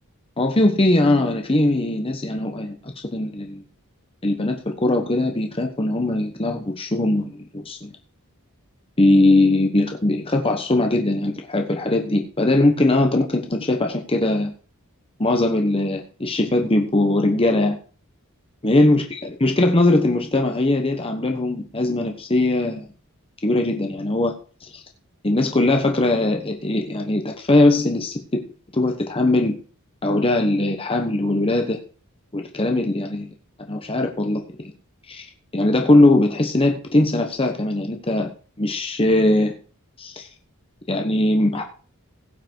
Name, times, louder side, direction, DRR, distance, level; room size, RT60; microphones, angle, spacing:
voice 1, 0.4-3.6 4.2-7.9 9.0-14.5 15.2-17.8 18.6-22.9 23.4-24.8 25.2-28.4 28.7-29.6 30.0-31.8 32.3-33.3 33.7-34.7 35.1-35.3 35.5-38.3 38.6-39.6 40.0-40.3 40.9-41.7, left 2 dB, 25° left, 4 dB, 1.1 m, -20 dB
16.5 x 5.9 x 4.6 m, 0.39 s
head